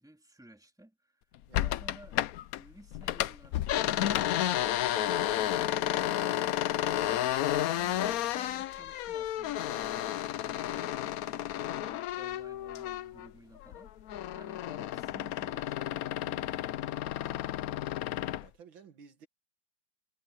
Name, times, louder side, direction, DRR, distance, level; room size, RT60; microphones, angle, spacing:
voice 1, 0.0-17.5, right 1 dB, ahead, 2.7 m, -56 dB
sound 1, 1.5-2.6 2.9-13.3 13.6-18.5, left 12 dB, 70° left, 0.8 m, -32 dB
voice 2, 18.4-19.3, right 6 dB, 85° right, 2.5 m, -55 dB
omnidirectional pair, 2.1 m